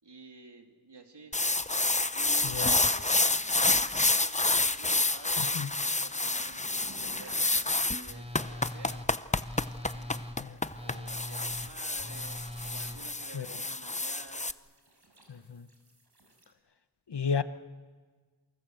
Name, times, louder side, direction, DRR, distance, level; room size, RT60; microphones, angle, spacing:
voice 1, 0.0-1.4 2.1-9.5 9.8-10.3 10.8-14.5, right 3 dB, 85° right, 2.8 m, -52 dB
sound 1, 1.3-14.5, left 2 dB, 20° left, 0.8 m, -28 dB
voice 2, 2.4-2.7 5.4-5.7 10.4-10.6 13.3-13.6 15.3-15.7 17.1-17.4, left 6 dB, 80° left, 1.1 m, -33 dB
sound 2, 4.3-16.5, right 1 dB, 70° right, 6.1 m, -58 dB
Telephone, 8.0-13.0, left 1 dB, 15° right, 1.7 m, -42 dB
28.0 x 24.0 x 7.9 m
wide cardioid pair, 40°, 40 cm